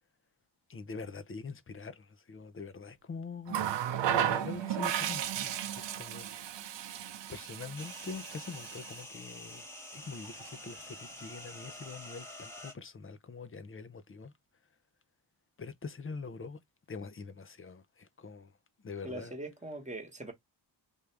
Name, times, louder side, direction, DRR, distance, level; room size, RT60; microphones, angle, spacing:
voice 1, 0.7-3.8 4.1-6.3 7.3-9.7 9.9-14.3 15.6-16.6 16.9-18.5 18.8-19.3, left 4 dB, 30° left, 0.7 m, -44 dB
Water tap faucet, 3.5-9.0 10.2-10.5, right 10 dB, 70° right, 0.7 m, -34 dB
sound 1, 7.8-12.7, left 1 dB, 5° left, 1.1 m, -47 dB
voice 2, 19.0-20.3, right 2 dB, 15° right, 1.3 m, -41 dB
3.6 x 2.7 x 3.3 m
cardioid pair, 70°, 45 cm